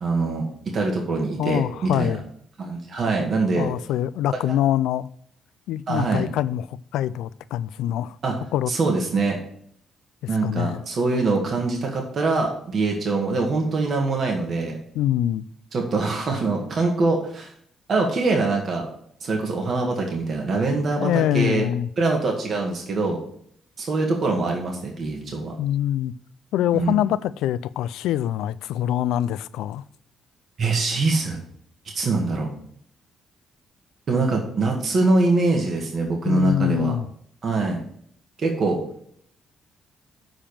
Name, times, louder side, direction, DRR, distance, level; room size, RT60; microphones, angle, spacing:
voice 1, 0.0-2.2 2.6-3.7 5.9-6.3 8.2-8.3 8.7-9.4 10.3-14.8 15.7-17.5 17.9-18.9 19.2-21.1 21.3-21.6 22.0-23.2 23.8-25.5 26.7-27.0 30.6-31.4 31.9-32.5 34.1-36.9 37.4-37.8 38.4-38.8, right 3 dB, 50° right, 1.9 m, -23 dB
voice 2, 1.4-2.2 3.6-5.1 5.7-8.2 8.5-8.7 10.4-10.8 14.9-15.5 21.0-21.9 25.6-26.1 26.5-29.8 36.3-37.1, left 12 dB, 90° left, 0.3 m, -24 dB
7.2 x 5.1 x 7.2 m
cardioid pair, 90°, 0 cm